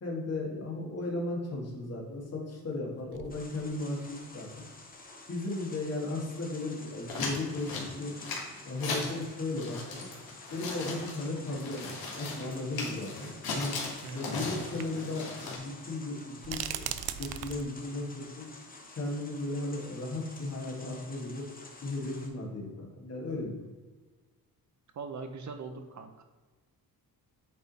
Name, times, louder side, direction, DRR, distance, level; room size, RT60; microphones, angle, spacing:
voice 1, 0.0-4.5 5.3-8.2 8.5-10.1 10.5-13.7 14.1-16.9 17.2-18.4 18.9-21.5 21.8-23.7, left 2 dB, 40° left, -2 dB, 2.0 m, -36 dB
sound 1, 1.9-2.0 2.7-2.8 3.1-4.1 4.7-4.8 6.6-6.7 8.0-8.1 8.3-8.4 9.4-9.5 9.8-9.9 11.3-11.4 12.9-13.0 13.9-14.2 14.6-14.9 15.1-15.2 16.4-17.6, right 11 dB, 85° right, 0.5 m, -39 dB
sound 2, 3.3-22.3, left 2 dB, 25° left, 1.0 m, -50 dB
sound 3, 7.1-9.2 9.5-15.6, left 3 dB, 70° left, 2.0 m, -38 dB
voice 2, 14.0-14.6 24.9-26.2, right 4 dB, 50° right, 6 dB, 0.7 m, -41 dB
8.6 x 3.7 x 4.2 m, 1.3 s
cardioid pair, 120°, 37 cm